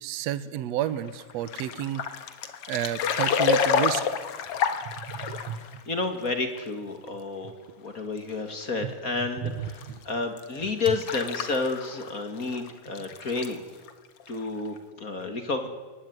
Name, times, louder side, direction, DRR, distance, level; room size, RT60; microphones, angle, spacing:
voice 1, 0.0-2.0 2.7-4.0 5.0-5.6 8.8-8.9 9.4-10.0, right 11 dB, 65° right, 15 dB, 1.9 m, -31 dB
sound 1, 1.0-5.8 6.3-6.4 6.6-6.7 7.1-7.2 8.2-8.3 9.6-9.8 10.4-12.2 12.4-13.5 13.9-14.0 14.2-14.4 14.8-14.9, left 7 dB, 55° left, 1.9 m, -28 dB
voice 2, 5.9-13.6 14.3-15.7, left 3 dB, 30° left, 7 dB, 2.0 m, -31 dB
23.0 x 18.5 x 9.6 m, 1.4 s
omnidirectional pair, 4.0 m